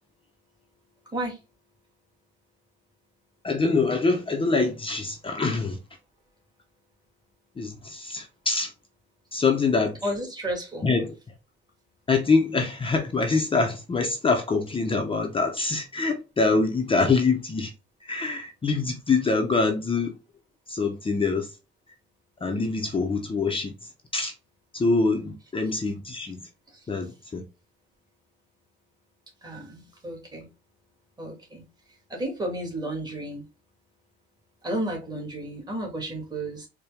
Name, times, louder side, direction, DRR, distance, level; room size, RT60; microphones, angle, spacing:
voice 1, 3.4-5.8 7.6-8.7 9.3-10.0 10.8-11.1 12.1-17.7 18.0-20.1 20.7-21.5 22.4-23.7 24.1-24.3 24.7-26.4 26.9-27.4, left 4 dB, 25° left, 0.6 m, -24 dB
voice 2, 10.0-10.9 29.4-30.5 31.2-31.6 32.1-33.4 34.6-36.7, right 1 dB, 20° right, 1.8 m, -32 dB
4.3 x 2.2 x 3.4 m
cardioid pair, 90°, 20 cm